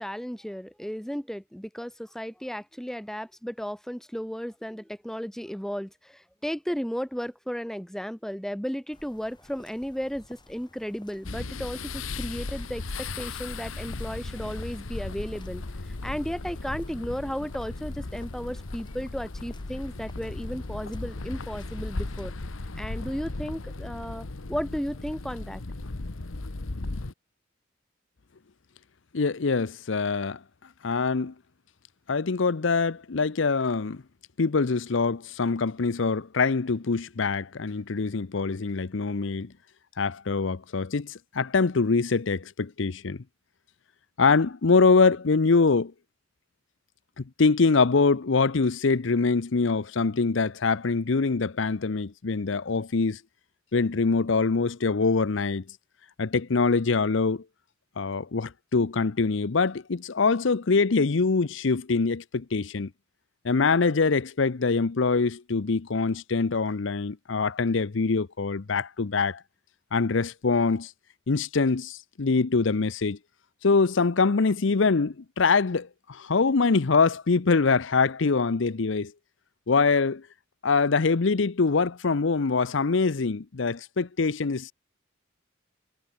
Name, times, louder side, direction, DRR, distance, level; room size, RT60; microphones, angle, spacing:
voice 1, 0.0-15.6 16.0-22.3 22.8-25.6, equal, ahead, 0.9 m, -34 dB
sound 1, 8.9-22.2, left 1 dB, 25° left, 6.0 m, -54 dB
sound 2, 11.2-27.1, left 2 dB, 90° left, 1.2 m, -36 dB
voice 2, 29.1-30.4 30.8-31.3 32.1-34.0 34.4-39.5 40.0-43.2 44.2-45.9 47.2-53.2 53.7-55.6 56.2-57.4 58.0-62.9 63.4-69.4 69.9-70.9 71.3-73.2 73.6-79.1 79.7-80.2 80.6-84.7, left 4 dB, 65° left, 0.7 m, -24 dB
head